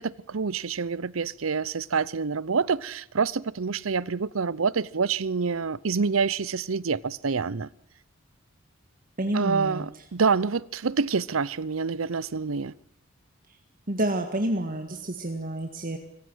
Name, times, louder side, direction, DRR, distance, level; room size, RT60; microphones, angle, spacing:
voice 1, 0.0-7.7 9.3-12.7, right 5 dB, 90° right, 0.7 m, -27 dB
voice 2, 9.2-9.8 13.9-16.0, right 1 dB, 45° right, 1.8 m, -28 dB
24.5 x 16.0 x 8.0 m
head